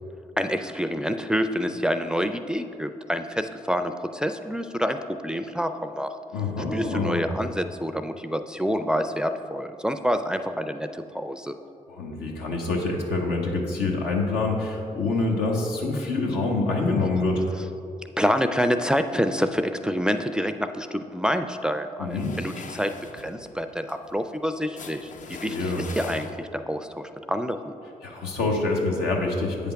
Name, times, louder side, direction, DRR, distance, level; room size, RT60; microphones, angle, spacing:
voice 1, 0.4-5.0 5.2-6.2 6.7-11.5 18.2-27.7, equal, 5° right, 8 dB, 0.4 m, -27 dB
voice 2, 6.3-7.3 11.9-17.4 22.0-22.4 25.3-25.9 28.0-29.7, left 3 dB, 85° left, 0 dB, 0.9 m, -26 dB
sound 1, 22.1-26.7, left 5 dB, 55° left, 0.5 m, -42 dB
8.1 x 3.4 x 5.7 m, 2.6 s
supercardioid pair, 50°, 16 cm